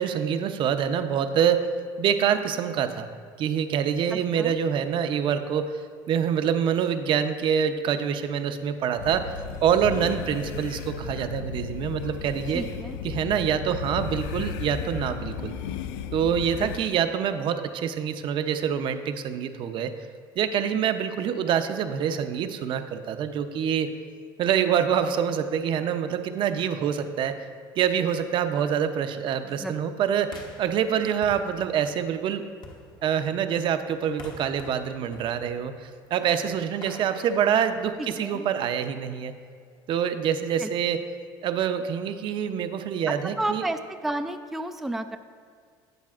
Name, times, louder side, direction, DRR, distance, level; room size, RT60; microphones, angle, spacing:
voice 1, 0.0-1.7 2.0-3.1 3.4-5.8 6.1-9.3 9.6-12.6 13.0-15.5 16.1-19.9 20.4-23.9 24.4-27.4 27.8-32.4 33.0-39.3 39.9-41.0 41.4-43.7, right 8 dB, 50° right, 9 dB, 0.6 m, -26 dB
voice 2, 4.1-4.6 12.5-13.0 16.6-16.7 29.4-29.9 38.0-38.5 40.6-40.7 43.1-45.2, right 1 dB, ahead, 7 dB, 0.3 m, -32 dB
sound 1, 9.0-16.8, left 7 dB, 85° left, 0.4 m, -35 dB
sound 2, 30.3-38.3, left 2 dB, 45° left, 1.0 m, -48 dB
12.0 x 8.2 x 2.4 m, 2.1 s
supercardioid pair, 110°, 11 cm